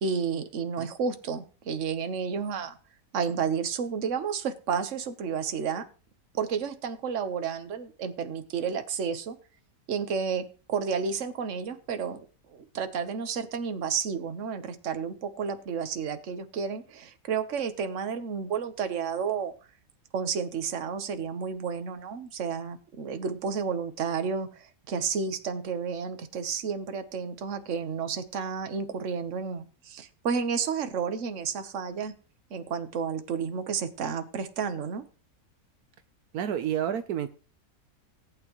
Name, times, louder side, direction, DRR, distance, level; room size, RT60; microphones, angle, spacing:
voice 1, 0.0-2.8 3.1-5.9 6.3-9.4 9.9-12.2 12.5-19.5 20.1-32.1 32.5-35.0, right 6 dB, 55° right, 9 dB, 1.3 m, -31 dB
voice 2, 36.3-37.3, right 9 dB, 80° right, 10 dB, 1.3 m, -29 dB
18.0 x 9.1 x 3.1 m, 0.36 s
omnidirectional pair, 1.6 m